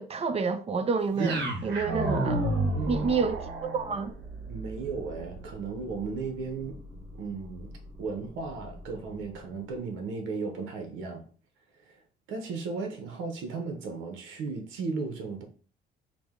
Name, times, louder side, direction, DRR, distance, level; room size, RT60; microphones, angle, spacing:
voice 1, 0.0-2.4 2.9-4.1, right 5 dB, 30° right, 0.6 m, -29 dB
sound 1, 1.1-9.3, right 2 dB, 65° right, 1.3 m, -33 dB
voice 2, 2.7-3.3 4.5-6.8 7.1-7.7 8.0-11.3 11.8-12.0 12.3-15.5, right 4 dB, 80° right, 0.8 m, -35 dB
4.8 x 2.1 x 3.6 m
cardioid pair, 85°, 20 cm